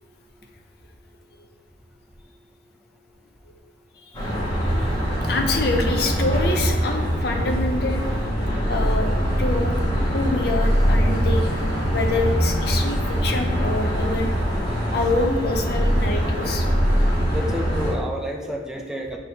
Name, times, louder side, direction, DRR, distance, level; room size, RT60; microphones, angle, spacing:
sound 1, 4.1-17.9, equal, 20° left, 1.3 m, -22 dB
voice 1, 5.2-8.0 8.7-9.1 9.4-9.7 10.1-11.6 11.9-14.3 14.9-16.7, left 3 dB, 55° left, 4 dB, 0.5 m, -26 dB
voice 2, 17.3-19.2, equal, 5° right, 0 dB, 0.4 m, -29 dB
4.6 x 4.0 x 2.8 m, 1.3 s
head